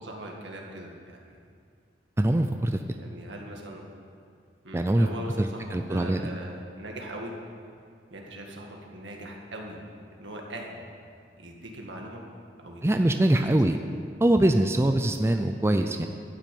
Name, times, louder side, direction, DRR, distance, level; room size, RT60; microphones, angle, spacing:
voice 1, 0.0-1.4 3.0-3.8 4.6-7.4 8.1-9.8 10.1-10.9 11.4-12.2 12.6-13.6, right 1 dB, 85° right, 0 dB, 1.9 m, -40 dB
voice 2, 2.2-2.8 4.7-5.1 5.4-6.2 12.8-13.8 14.2-16.1, right 1 dB, 15° right, 6 dB, 0.4 m, -23 dB
12.5 x 6.3 x 8.5 m, 2.2 s
head